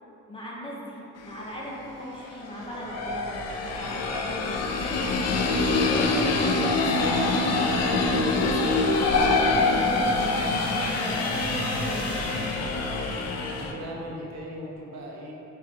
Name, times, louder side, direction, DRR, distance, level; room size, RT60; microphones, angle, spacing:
voice 1, 0.3-12.1, left 1 dB, 15° left, -6 dB, 0.7 m, -37 dB
sound 1, 1.3-1.4 2.4-13.7, left 3 dB, 60° left, 0.5 m, -25 dB
sound 2, 8.0-13.0, right 1 dB, 5° right, 1.2 m, -38 dB
sound 3, 8.7-13.5, left 2 dB, 25° right, 0.3 m, -40 dB
voice 2, 13.5-15.3, equal, 60° right, -2 dB, 0.8 m, -38 dB
4.3 x 2.4 x 3.1 m, 2.9 s
cardioid pair, 90°, 30 cm